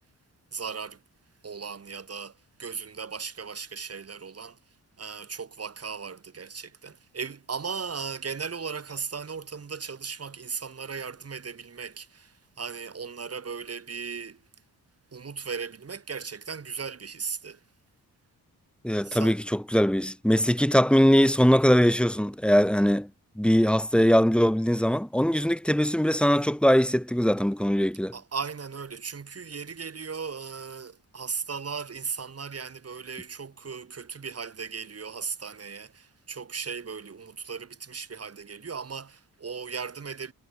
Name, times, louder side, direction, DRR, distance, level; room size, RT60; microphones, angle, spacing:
voice 1, 0.5-1.0 1.4-4.6 5.0-14.4 15.1-17.6 19.0-19.4 28.1-40.3, right 5 dB, 40° right, 6.5 m, -37 dB
voice 2, 18.8-23.1 23.4-28.1, equal, 5° left, 3.4 m, -21 dB
wide cardioid pair, 135°, 35 cm